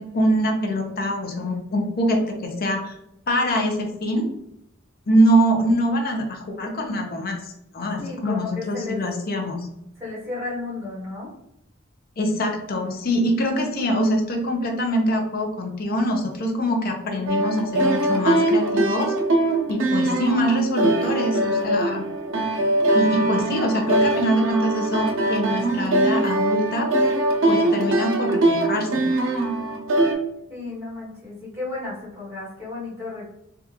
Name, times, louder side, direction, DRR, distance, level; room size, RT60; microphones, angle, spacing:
voice 1, 0.0-2.9 3.3-4.3 5.1-9.6 12.2-19.1 19.7-22.0 22.9-26.9 27.5-29.0, equal, 50° left, 2 dB, 0.7 m, -24 dB
voice 2, 8.0-9.0 10.0-11.3 30.5-33.3, left 3 dB, 10° right, -7 dB, 1.5 m, -33 dB
sound 1, 17.3-30.1, right 2 dB, 70° right, 0.6 m, -22 dB
3.4 x 2.4 x 2.9 m, 0.80 s
head